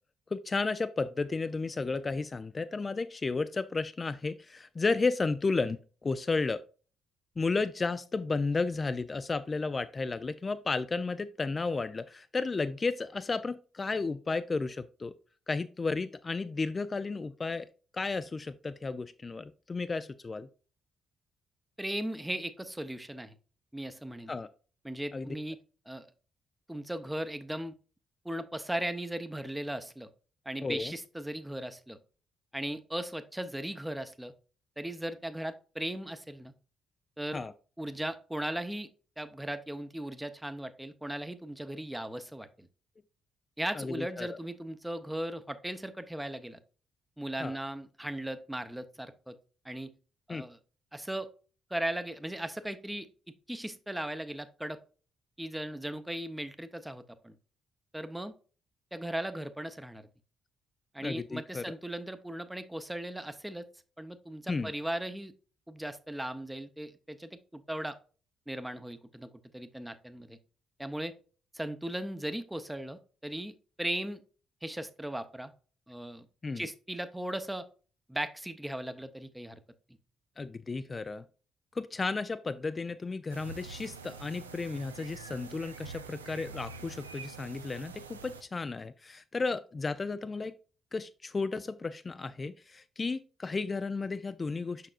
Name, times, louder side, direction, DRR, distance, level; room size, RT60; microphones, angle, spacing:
voice 1, 0.3-6.6 7.4-15.1 15.5-20.5 24.3-24.5 25.1-25.4 30.6-30.9 37.3-37.5 43.7-44.3 47.4-47.6 50.3-50.4 61.0-61.6 64.5-64.7 76.4-76.7 80.4-81.2 81.8-90.5 90.9-94.9, left 3 dB, 35° left, 12 dB, 0.4 m, -33 dB
voice 2, 21.8-23.3 23.7-24.3 24.8-25.6 25.9-26.1 26.7-27.7 28.2-30.1 30.5-32.0 32.5-34.3 34.8-36.5 37.2-37.4 37.8-38.9 39.2-42.7 43.6-46.6 47.2-49.4 49.6-49.9 50.3-50.6 50.9-51.3 51.7-53.1 53.5-54.8 55.4-57.4 57.9-58.3 58.9-60.1 60.9-63.7 64.0-65.3 65.7-68.0 68.5-70.4 70.8-71.1 71.5-74.2 74.6-75.5 75.9-76.3 76.6-77.7 78.1-79.6, right 1 dB, 10° right, 10 dB, 0.8 m, -37 dB
sound 1, 83.3-88.4, right 5 dB, 85° right, 0.3 m, -46 dB
6.7 x 5.9 x 2.5 m, 0.37 s
figure-of-eight pair, 40°, 0 cm